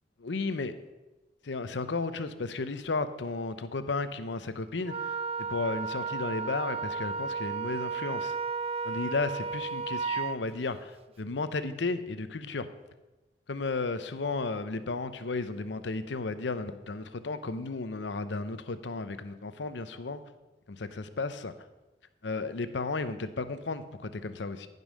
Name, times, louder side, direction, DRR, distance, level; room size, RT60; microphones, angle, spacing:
voice 1, 0.2-0.7 1.4-5.1 5.5-8.4 8.8-12.7 13.5-20.2 20.7-21.5 22.2-24.7, left 3 dB, 80° left, 12 dB, 0.7 m, -34 dB
Wind instrument woodwind instrument, 4.8-10.4, right 5 dB, 35° right, 0.4 m, -33 dB
15.0 x 5.4 x 6.3 m, 1.1 s
head